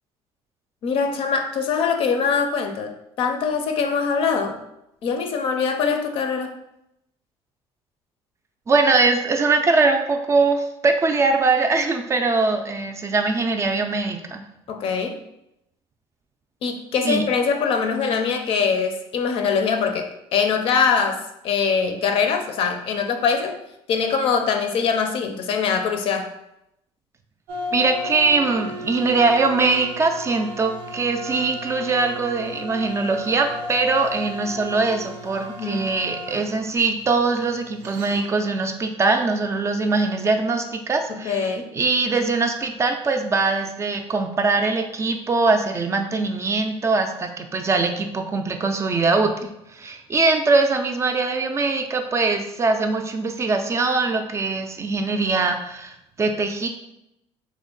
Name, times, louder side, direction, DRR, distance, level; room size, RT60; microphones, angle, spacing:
voice 1, 0.8-4.6 5.0-6.5 14.7-15.2 16.6-23.6 23.9-26.3 35.6-35.8 41.1-41.7, left 6 dB, 60° left, 5 dB, 0.5 m, -23 dB
voice 2, 8.7-14.4 17.0-17.2 27.7-56.7, right 3 dB, 25° right, 5 dB, 0.3 m, -22 dB
sound 1, 27.5-38.5, left 1 dB, 85° right, 0.5 m, -35 dB
3.3 x 2.1 x 3.8 m, 0.82 s
cardioid pair, 120°, 11 cm